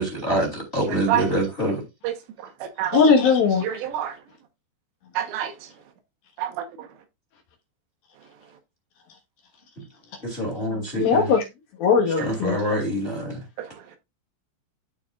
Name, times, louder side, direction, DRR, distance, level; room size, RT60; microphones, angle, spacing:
voice 1, 0.0-1.8 10.2-11.3 12.2-13.4, right 1 dB, 15° left, 2.0 m, -26 dB
voice 2, 0.8-1.2 2.0-2.1 2.6-3.0 3.6-4.2 5.2-5.5 6.4-6.6, right 11 dB, 80° right, 3.4 m, -26 dB
voice 3, 2.9-3.6 11.0-11.4 11.8-12.6, left 5 dB, 65° left, 2.9 m, -19 dB
13.5 x 4.7 x 2.4 m
omnidirectional pair, 5.1 m